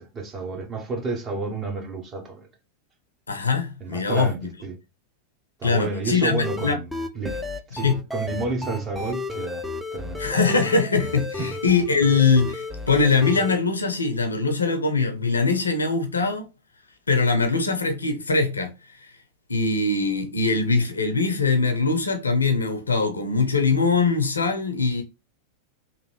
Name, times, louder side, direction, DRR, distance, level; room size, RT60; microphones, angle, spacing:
voice 1, 0.0-2.5 3.8-4.8 5.6-6.9 7.1-7.4 7.7-9.6 9.9-10.2 11.4-11.5, right 3 dB, 25° right, 0.9 m, -30 dB
voice 2, 3.3-4.5 5.6-6.8 7.8-8.0 10.2-16.5 17.1-18.7 19.5-25.0, left 4 dB, 75° left, 0.6 m, -22 dB
sound 1, 6.4-13.6, left 3 dB, 5° left, 0.4 m, -32 dB
3.1 x 2.5 x 2.9 m
figure-of-eight pair, 90°, 0 cm